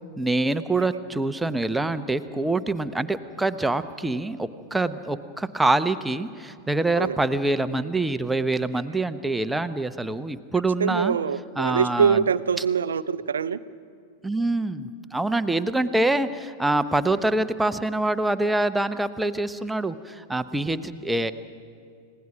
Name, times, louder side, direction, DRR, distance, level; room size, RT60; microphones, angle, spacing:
voice 1, 0.2-11.2 11.6-12.2 14.2-21.3, right 2 dB, 5° right, 11 dB, 0.9 m, -25 dB
voice 2, 10.8-13.6, right 6 dB, 70° right, 16 dB, 0.6 m, -23 dB
29.5 x 17.5 x 6.0 m, 2.2 s
figure-of-eight pair, 90°, 0 cm